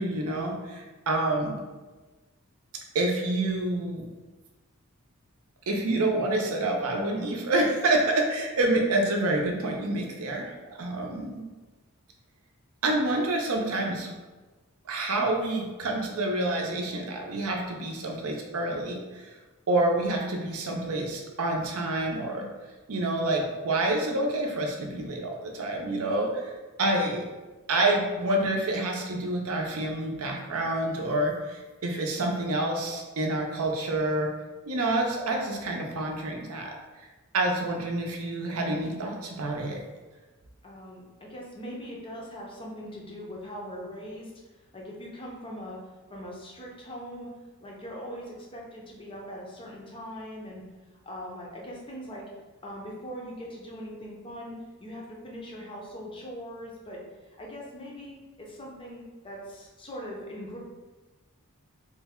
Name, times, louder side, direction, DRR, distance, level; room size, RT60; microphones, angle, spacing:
voice 1, 0.0-1.6 2.9-4.0 5.7-11.4 12.8-14.1 14.9-19.3 19.7-22.5 22.9-26.4 26.8-27.3 27.7-34.3 34.7-36.7 37.3-39.8, right 2 dB, 70° right, 1 dB, 0.5 m, -28 dB
voice 2, 40.6-44.3 44.7-45.8 46.1-50.6 51.0-52.3 52.6-60.6, equal, 25° left, -2 dB, 0.5 m, -41 dB
3.2 x 2.1 x 3.5 m, 1.2 s
head